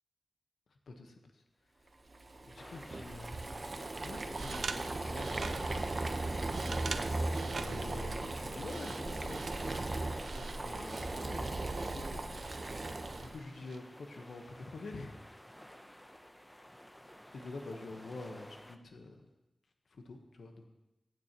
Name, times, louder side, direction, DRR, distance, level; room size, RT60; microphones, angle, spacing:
Boiling, 2.1-13.4, right 2 dB, 45° right, 1.1 m, -37 dB
voice 1, 2.4-3.4 4.0-5.6 7.4-9.5 10.2-12.8 13.2-15.1 16.5-16.6 17.3-19.2 19.9-20.7, left 3 dB, 90° left, 4 dB, 1.2 m, -47 dB
sound 1, 2.6-18.8, equal, 10° left, 0.8 m, -53 dB
sound 2, 3.9-13.8, right 4 dB, 85° right, 0.6 m, -47 dB
23.0 x 9.5 x 3.0 m, 0.97 s
wide cardioid pair, 85°, 0 cm